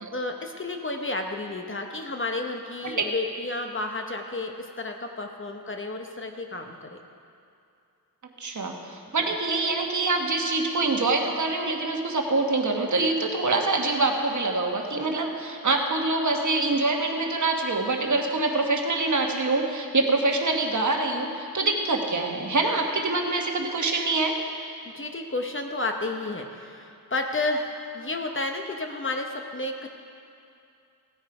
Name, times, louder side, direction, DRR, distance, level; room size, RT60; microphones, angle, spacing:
voice 1, 0.1-7.0 24.9-29.9, left 2 dB, 30° left, 3 dB, 0.9 m, -31 dB
voice 2, 8.4-24.3, right 3 dB, 45° right, 2 dB, 1.3 m, -25 dB
16.0 x 9.5 x 4.9 m, 2.5 s
wide cardioid pair, 120°, 40 cm